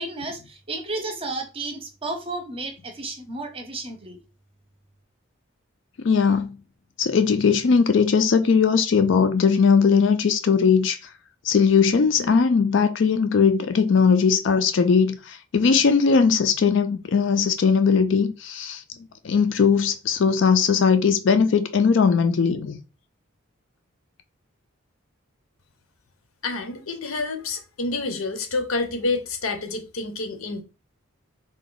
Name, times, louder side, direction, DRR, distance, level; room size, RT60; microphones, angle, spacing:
voice 1, 0.0-4.2, right 2 dB, 25° right, 0.6 m, -32 dB
voice 2, 6.0-6.6 7.0-11.0 11.4-18.8 19.2-22.8, left 5 dB, 60° left, 0.4 m, -19 dB
voice 3, 26.4-30.6, left 3 dB, 85° left, 0.8 m, -28 dB
3.7 x 2.3 x 3.9 m
head